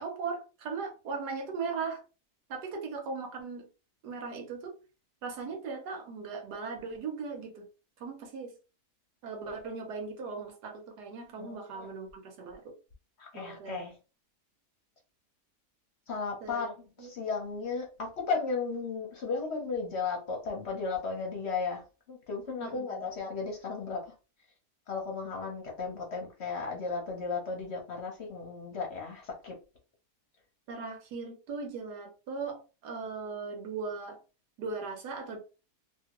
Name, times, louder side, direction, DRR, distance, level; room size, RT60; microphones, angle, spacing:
voice 1, 0.0-2.0 2.5-3.7 4.0-4.8 5.2-7.7 8.0-8.6 9.2-12.6 13.3-13.8 16.4-16.7 17.0-17.1 22.6-23.0 30.7-34.2 34.6-35.4, right 4 dB, 85° right, 1.4 m, -38 dB
voice 2, 11.4-11.9 13.2-14.0 16.1-16.7 17.0-21.8 22.1-24.1 24.9-29.5, left 4 dB, 55° left, 0.8 m, -35 dB
2.8 x 2.7 x 2.9 m
omnidirectional pair, 1.7 m